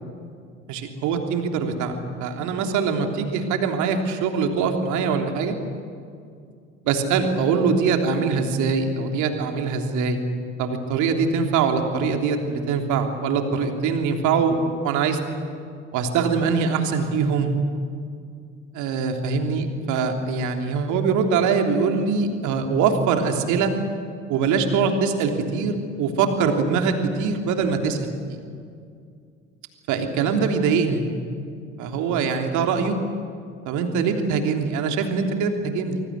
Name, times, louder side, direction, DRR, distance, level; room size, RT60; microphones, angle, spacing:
voice 1, 0.7-5.6 6.8-10.2 10.6-15.2 15.9-17.5 18.7-23.7 24.3-28.1 29.9-31.0 31.8-33.0 33.6-36.0, right 5 dB, 50° right, 5 dB, 3.3 m, -23 dB
25.0 x 24.0 x 8.4 m, 2.3 s
figure-of-eight pair, 60°, 37 cm